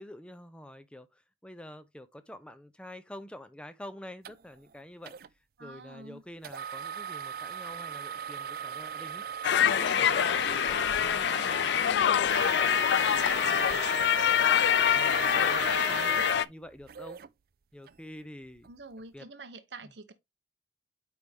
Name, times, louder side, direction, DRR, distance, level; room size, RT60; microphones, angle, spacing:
voice 1, 0.0-5.2 5.6-9.2 9.6-10.6 11.0-14.5 14.9-17.2 17.7-18.7 19.1-19.3, left 1 dB, 5° left, 0.5 m, -47 dB
sound 1, 4.2-4.3 5.1-5.3 6.4-17.3 17.9-18.0 18.6-18.7, right 8 dB, 55° right, 0.4 m, -37 dB
voice 2, 5.6-6.2 12.2-12.4 18.6-20.1, right 3 dB, 75° right, 0.8 m, -47 dB
sound 2, 9.4-16.4, left 9 dB, 70° left, 0.3 m, -25 dB
9.3 x 3.5 x 3.4 m
head